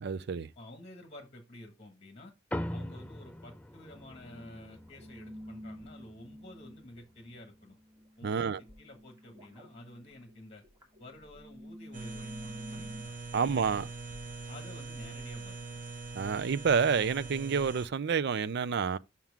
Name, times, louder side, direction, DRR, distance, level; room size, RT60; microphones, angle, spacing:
voice 1, 0.0-0.5 8.2-8.6 13.3-13.9 16.1-19.0, right 6 dB, 60° right, 0.4 m, -29 dB
voice 2, 0.5-2.3 2.7-7.8 8.2-10.6 11.0-13.9 14.5-15.6, left 1 dB, 35° left, 1.5 m, -51 dB
sound 1, 2.5-7.2, left 1 dB, 5° left, 0.3 m, -42 dB
sound 2, 3.9-13.0, equal, 15° right, 2.4 m, -50 dB
sound 3, 11.9-17.9, right 3 dB, 40° right, 1.0 m, -42 dB
7.4 x 5.9 x 3.5 m
head